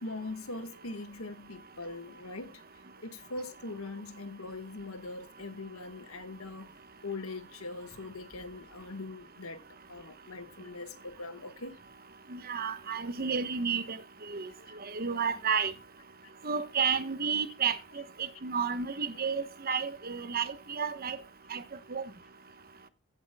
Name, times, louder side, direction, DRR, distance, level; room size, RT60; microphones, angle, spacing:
voice 1, 0.0-2.6 3.0-6.8 7.0-11.7 14.6-14.8 17.9-18.0 19.1-19.3 20.4-20.5, left 2 dB, 80° left, 1.5 m, -42 dB
voice 2, 12.3-14.0 14.3-14.5 14.9-15.7 16.4-21.2 21.5-21.6 21.9-22.0, right 6 dB, 45° right, 1.0 m, -31 dB
15.5 x 8.1 x 2.2 m
head